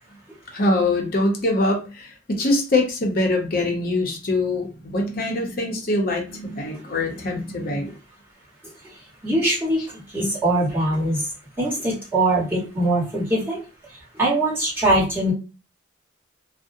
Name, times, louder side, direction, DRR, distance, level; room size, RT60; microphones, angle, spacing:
voice 1, 0.5-7.9, left 2 dB, 50° left, 2 dB, 0.6 m, -23 dB
voice 2, 9.2-9.8 10.1-11.2 11.6-13.6 14.1-15.3, right 1 dB, 10° right, -8 dB, 1.3 m, -22 dB
2.5 x 2.0 x 2.6 m, 0.32 s
head